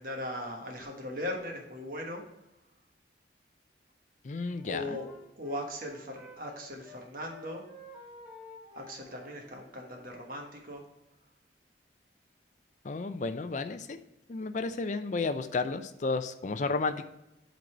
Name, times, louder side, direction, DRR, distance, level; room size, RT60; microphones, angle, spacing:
voice 1, 0.0-2.2 4.6-5.1 5.4-7.6 8.7-10.8, left 1 dB, 50° right, 1 dB, 1.3 m, -39 dB
voice 2, 4.2-5.0 12.8-14.0 14.3-17.0, left 3 dB, 40° left, 9 dB, 0.4 m, -32 dB
Wind instrument woodwind instrument, 4.4-7.0 7.3-10.0, left 2 dB, 5° right, 1.2 m, -52 dB
7.8 x 4.0 x 4.4 m, 0.92 s
head